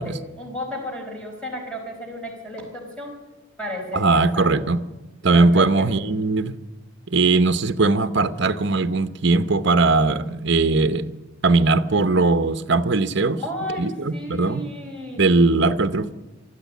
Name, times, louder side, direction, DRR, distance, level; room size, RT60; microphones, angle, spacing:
voice 1, 0.0-3.1 3.6-4.7 5.3-5.9 13.4-15.2, left 1 dB, 5° left, 0 dB, 4.6 m, -33 dB
voice 2, 3.9-4.8 5.2-6.6 7.1-11.1 11.4-13.4 13.8-14.7 15.2-16.1, right 3 dB, 55° right, 11 dB, 0.9 m, -19 dB
24.0 x 13.5 x 8.4 m, 1.1 s
head